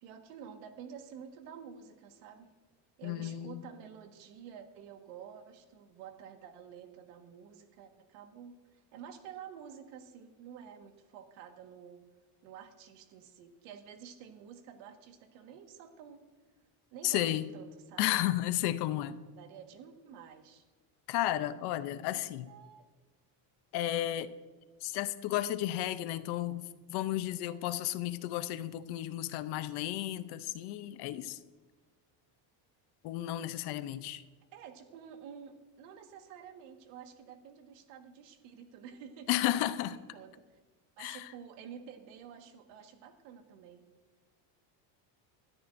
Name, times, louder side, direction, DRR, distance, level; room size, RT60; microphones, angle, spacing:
voice 1, 0.0-2.5 3.0-8.6 8.9-12.0 12.4-16.2 16.9-18.1 19.3-20.6 22.1-22.9 34.5-40.4 41.0-43.8, right 7 dB, 75° right, 6 dB, 1.7 m, -50 dB
voice 2, 3.0-3.6 17.0-17.5 18.0-19.2 21.1-22.5 23.7-24.3 24.8-26.6 26.9-31.4 33.0-34.2 39.3-40.0 41.0-41.3, left 14 dB, 50° left, 13 dB, 0.6 m, -33 dB
21.0 x 12.5 x 2.6 m, 1.3 s
cardioid pair, 175°, 50 cm